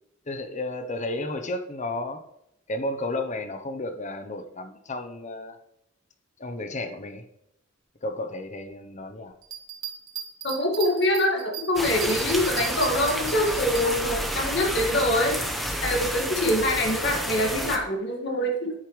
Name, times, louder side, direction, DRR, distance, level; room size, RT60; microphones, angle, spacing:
voice 1, 0.3-2.2 2.7-5.6 6.4-7.2 8.0-9.3, left 2 dB, 35° left, 8 dB, 0.8 m, -32 dB
Bell, 9.4-13.8 14.3-14.4, right 10 dB, 90° right, 1.8 m, -37 dB
voice 2, 10.4-15.4 15.8-18.7, left 1 dB, 60° left, 1 dB, 2.0 m, -24 dB
sound 1, 11.8-17.8, equal, ahead, 0.9 m, -30 dB
9.7 x 8.1 x 3.2 m, 0.80 s
head